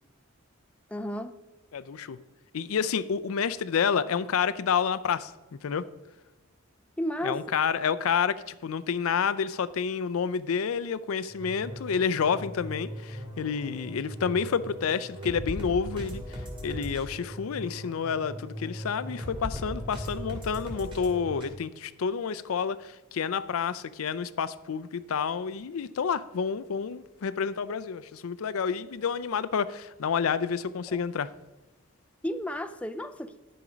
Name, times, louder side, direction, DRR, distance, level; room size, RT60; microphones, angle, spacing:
voice 1, 0.9-1.3 7.0-7.4 30.9-31.0 32.2-33.3, equal, 5° left, 0.4 m, -32 dB
voice 2, 1.7-2.2 2.5-5.3 5.6-5.8 7.2-31.3, left 6 dB, 85° left, 0.4 m, -29 dB
sound 1, 11.3-21.5, equal, 25° right, 2.1 m, -38 dB
10.5 x 6.9 x 5.0 m
head